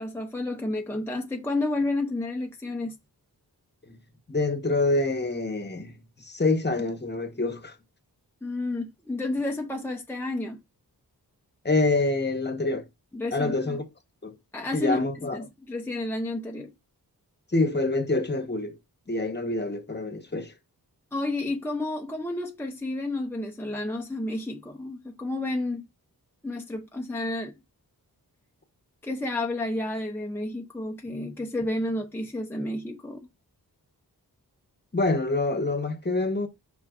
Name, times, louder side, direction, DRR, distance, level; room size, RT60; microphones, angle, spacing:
voice 1, 0.0-2.9 8.4-10.6 13.1-13.8 14.5-15.1 15.3-16.7 21.1-25.9 26.4-27.5 29.0-33.3, left 2 dB, 5° left, 0.7 m, -31 dB
voice 2, 4.3-7.7 11.6-12.8 13.3-13.8 14.2-14.3 14.7-15.4 17.5-18.8 19.1-20.5 34.9-36.5, left 2 dB, 25° left, 1.1 m, -26 dB
7.8 x 5.5 x 2.6 m
wide cardioid pair, 120°, 38 cm